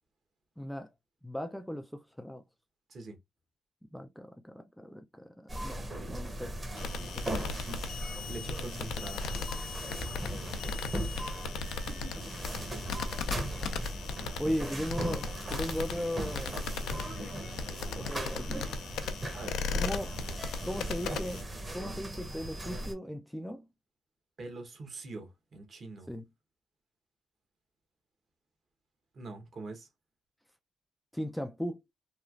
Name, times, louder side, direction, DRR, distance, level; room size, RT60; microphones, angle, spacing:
voice 1, 0.6-0.9 1.2-2.4 3.9-6.6 7.0-7.3 10.2-10.3 14.4-16.6 18.0-18.8 19.7-20.1 20.6-23.6 26.1-26.2 31.1-31.8, equal, ahead, 0.3 m, -37 dB
sound 1, 5.5-22.9, right 1 dB, 20° right, 0.8 m, -38 dB
sound 2, 6.8-21.4, left 5 dB, 80° left, 0.5 m, -38 dB
voice 2, 8.3-9.6 11.0-11.1 11.9-12.2 12.7-12.9 19.3-19.5 24.4-26.1 29.1-29.9, right 3 dB, 50° right, 1.0 m, -44 dB
3.0 x 2.3 x 2.3 m
cardioid pair, 90°, 0 cm